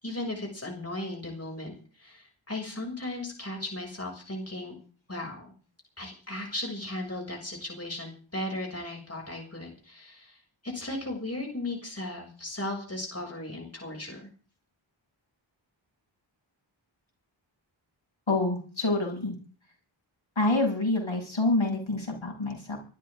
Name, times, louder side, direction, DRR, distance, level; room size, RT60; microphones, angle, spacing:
voice 1, 0.0-4.8 5.1-5.5 6.0-14.3, left 1 dB, 30° left, 0 dB, 6.8 m, -36 dB
voice 2, 18.3-19.4 20.4-22.8, left 2 dB, 70° left, 1 dB, 7.3 m, -27 dB
25.0 x 13.0 x 3.8 m, 0.38 s
wide cardioid pair, 55°, 48 cm